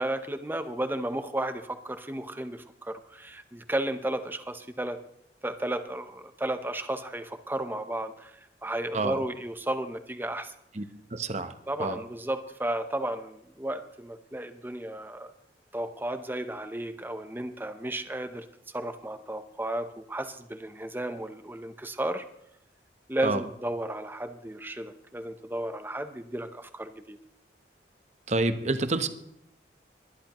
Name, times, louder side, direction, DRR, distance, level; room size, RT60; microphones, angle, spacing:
voice 1, 0.0-5.0 5.4-8.3 8.6-10.5 11.7-15.3 15.7-18.5 18.7-22.2 23.1-27.2, right 1 dB, 10° right, 9 dB, 0.7 m, -33 dB
voice 2, 11.1-11.5 11.8-12.0 23.2-23.4 28.3-29.1, right 2 dB, 40° right, 9 dB, 0.9 m, -28 dB
22.0 x 11.0 x 3.0 m, 0.78 s
head